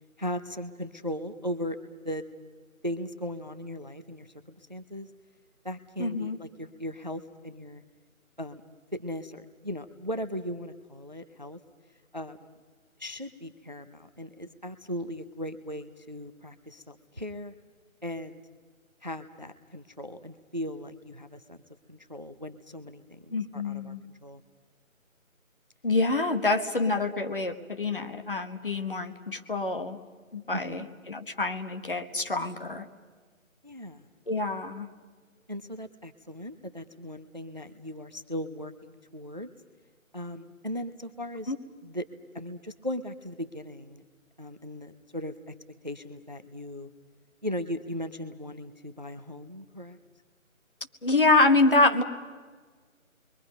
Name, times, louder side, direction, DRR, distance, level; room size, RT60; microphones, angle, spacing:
voice 1, 0.2-2.2 2.8-5.1 5.6-7.8 8.4-8.6 8.9-11.6 12.1-12.6 13.0-17.5 18.0-18.4 19.0-21.6 21.9-24.0 24.2-24.4 30.5-30.8 33.6-34.1 35.5-39.5 40.1-41.5 41.8-44.0 44.4-45.5 45.8-46.9 47.4-50.0, equal, 35° right, 11 dB, 0.6 m, -38 dB
voice 2, 6.0-6.4 23.3-24.0 25.8-30.0 30.3-32.9 34.3-34.9 41.5-41.6 51.0-52.0, left 2 dB, 40° left, 7 dB, 1.3 m, -26 dB
29.5 x 22.5 x 5.3 m, 1.5 s
figure-of-eight pair, 175°, 42 cm